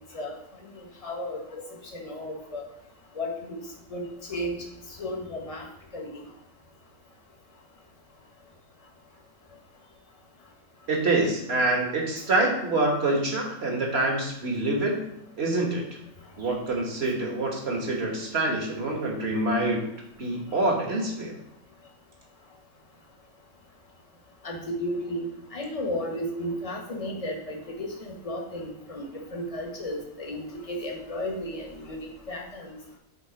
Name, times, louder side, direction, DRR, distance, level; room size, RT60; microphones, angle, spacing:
voice 1, 0.7-1.6 1.9-2.6 3.1-3.6 3.9-4.6 4.9-5.7 5.9-6.2 24.4-32.7, left 1 dB, 25° left, 0 dB, 1.1 m, -34 dB
voice 2, 10.9-15.0 15.4-15.8 16.4-19.8 20.2-21.3, right 2 dB, 40° right, 0 dB, 1.5 m, -26 dB
7.2 x 3.7 x 5.1 m, 0.82 s
omnidirectional pair, 1.9 m